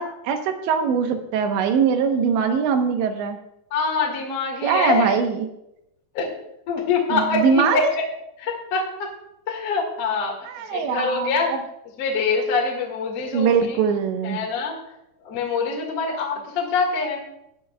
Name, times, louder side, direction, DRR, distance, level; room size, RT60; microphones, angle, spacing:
voice 1, 0.0-3.4 4.6-5.5 7.1-7.8 10.5-11.4 13.3-14.4, right 6 dB, 90° right, 6 dB, 3.4 m, -22 dB
voice 2, 3.7-5.2 6.1-6.3 6.7-8.0 8.4-9.1 9.5-10.4 10.7-11.5 12.0-13.8 14.2-14.8 15.2-17.2, left 4 dB, 50° left, -1 dB, 2.1 m, -24 dB
19.0 x 10.5 x 2.3 m, 0.83 s
omnidirectional pair, 5.0 m